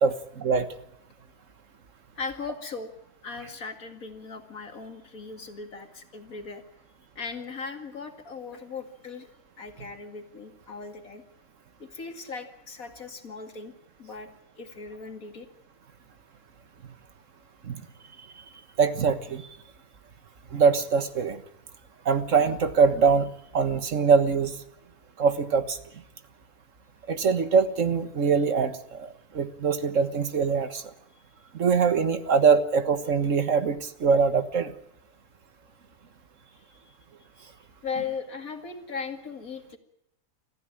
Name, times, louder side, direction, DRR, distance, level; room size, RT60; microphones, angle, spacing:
voice 1, 0.0-0.7 17.7-17.8 18.8-19.5 20.5-21.4 22.1-23.3 23.5-24.5 25.2-25.8 27.1-30.8 31.5-34.7, right 5 dB, 60° right, 10 dB, 1.8 m, -23 dB
voice 2, 2.2-2.9 3.2-6.6 7.2-9.3 9.6-11.2 11.8-13.7 14.0-14.3 14.6-15.5 36.9-37.0 37.4-39.8, left 5 dB, 75° left, 6 dB, 2.7 m, -38 dB
26.0 x 14.5 x 8.9 m, 0.80 s
omnidirectional pair, 1.5 m